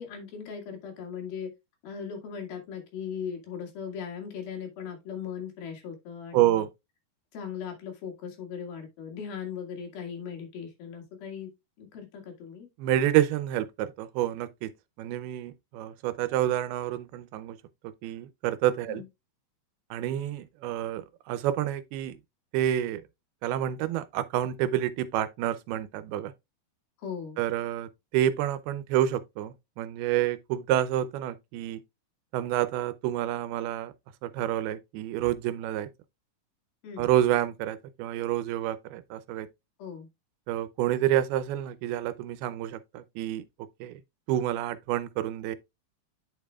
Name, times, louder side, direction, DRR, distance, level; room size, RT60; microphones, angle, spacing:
voice 1, 0.0-1.5 1.8-6.7 7.3-11.5 11.8-12.7 18.9-19.1 27.0-27.4 36.8-37.1 39.8-40.1, left 7 dB, 75° left, 3.9 m, -38 dB
voice 2, 6.3-6.7 12.8-14.7 15.0-17.6 17.8-19.0 19.9-22.2 22.5-23.0 23.4-26.3 27.4-31.8 32.3-33.9 34.2-35.9 37.0-39.5 40.5-43.4 43.8-44.0 44.3-45.6, right 12 dB, 90° right, 2.6 m, -28 dB
8.9 x 6.8 x 2.3 m
omnidirectional pair, 4.4 m